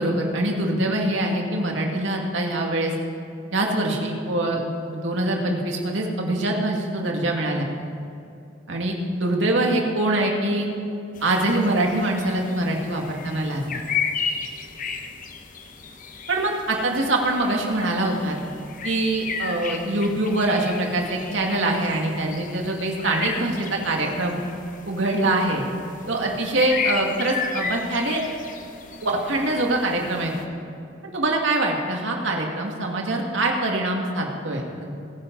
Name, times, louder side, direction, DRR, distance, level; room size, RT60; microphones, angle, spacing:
voice 1, 0.0-2.9 3.5-7.7 8.7-10.7 11.2-13.8 16.3-18.4 18.8-24.4 24.9-25.6 26.1-28.2 29.0-30.3 31.1-35.0, right 2 dB, 70° right, 0 dB, 2.2 m, -24 dB
sound 1, 11.2-30.4, left 5 dB, 45° left, 1.0 m, -34 dB
21.5 x 9.9 x 4.0 m, 2.6 s
head